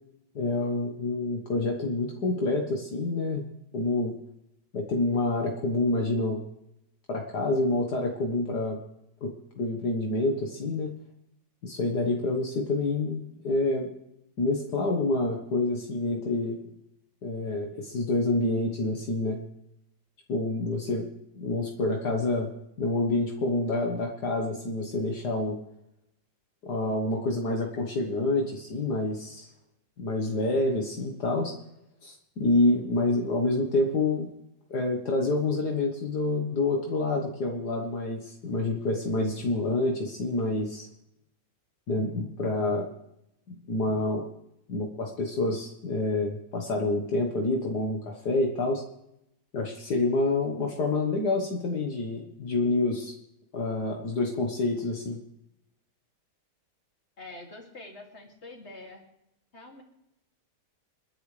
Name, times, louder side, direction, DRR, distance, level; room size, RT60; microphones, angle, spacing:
voice 1, 0.4-3.5 3.7-4.2 4.7-6.4 7.1-8.8 9.2-10.9 11.6-13.9 14.4-16.6 17.2-19.4 20.3-21.1 21.3-22.5 22.8-25.5 26.6-29.5 30.0-31.5 32.0-34.3 34.7-40.9 41.9-42.9 43.5-44.2 44.7-48.8 49.5-53.1 53.5-55.2, left 2 dB, 70° left, 1 dB, 2.0 m, -27 dB
voice 2, 57.2-59.0 59.5-59.8, left 2 dB, 40° left, 1 dB, 2.9 m, -45 dB
29.0 x 11.0 x 3.4 m, 0.83 s
omnidirectional pair, 1.9 m